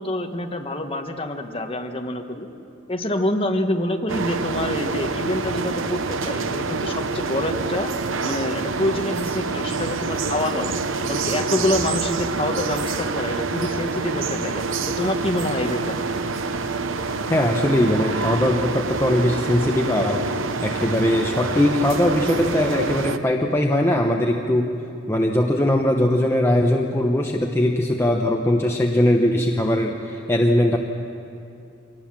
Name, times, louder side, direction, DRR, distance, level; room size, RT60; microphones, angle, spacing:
voice 1, 0.0-2.5 2.9-7.9 8.2-10.7 11.1-16.0, left 1 dB, 25° left, 4 dB, 1.3 m, -26 dB
sound 1, 4.1-23.2, right 3 dB, 75° right, 0.8 m, -26 dB
voice 2, 17.3-20.2 20.6-24.8 25.1-30.8, left 1 dB, 10° left, 1 dB, 0.9 m, -20 dB
24.0 x 19.0 x 7.5 m, 2.7 s
head